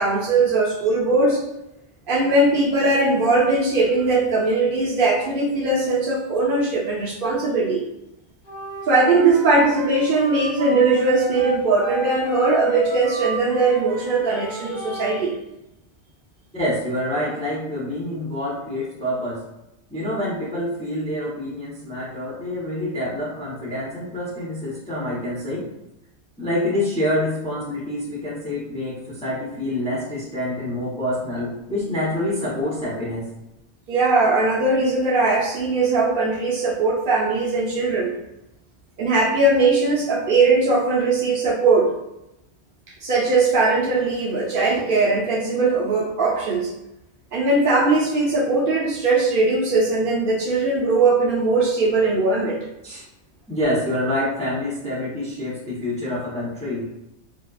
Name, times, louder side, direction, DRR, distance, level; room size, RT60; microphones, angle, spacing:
voice 1, 0.0-1.4 2.1-7.8 8.9-15.3 33.9-38.1 39.0-41.9 43.0-46.7 47.3-52.6, right 3 dB, 60° right, -3 dB, 0.7 m, -20 dB
Wind instrument woodwind instrument, 8.4-15.2, equal, 55° left, 1.0 m, -33 dB
voice 2, 16.5-19.4 19.9-25.7 26.4-33.3 52.8-53.0 53.5-56.9, left 1 dB, 10° left, -6 dB, 0.4 m, -26 dB
2.7 x 2.2 x 2.2 m, 0.88 s
omnidirectional pair, 1.1 m